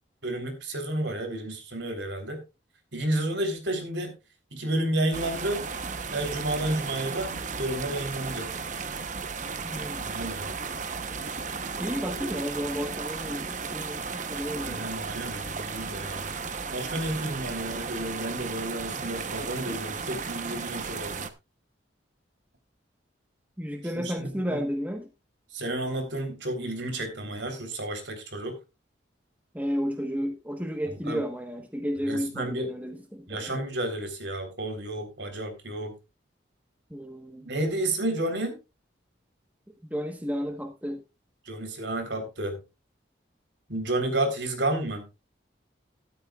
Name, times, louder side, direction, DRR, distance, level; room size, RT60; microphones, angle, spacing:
voice 1, 0.2-2.4 2.9-4.1 4.5-5.6 6.1-8.5 10.0-10.6 14.6-16.3 16.7-21.3 24.0-24.6 25.5-28.5 31.1-31.2 32.1-32.7 33.3-35.9 37.4-38.6 41.5-42.6 43.7-45.0, right 1 dB, 70° right, 6 dB, 3.7 m, -31 dB
sound 1, 5.1-21.3, right 5 dB, 40° right, 0.9 m, -35 dB
voice 2, 9.6-10.1 11.8-14.9 23.6-25.1 29.5-33.5 36.9-37.5 39.9-41.0, equal, 10° right, 4 dB, 1.2 m, -32 dB
13.0 x 13.0 x 2.4 m, 0.26 s
head